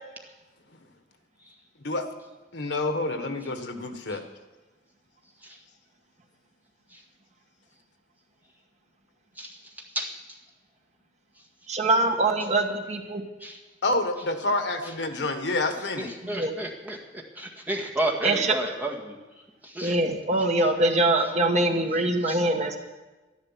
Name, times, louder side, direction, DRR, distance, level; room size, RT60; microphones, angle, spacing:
voice 1, 2.5-4.2 13.8-16.1, left 2 dB, 75° left, 7 dB, 1.4 m, -28 dB
voice 2, 9.4-10.2 13.4-13.6 16.0-19.2 19.6-20.0 22.2-22.4, right 1 dB, 10° right, -1 dB, 1.8 m, -32 dB
voice 3, 11.7-13.2 16.2-16.5 18.2-18.5 19.8-22.8, right 2 dB, 40° right, 4 dB, 1.4 m, -23 dB
12.5 x 11.5 x 7.4 m, 1.2 s
head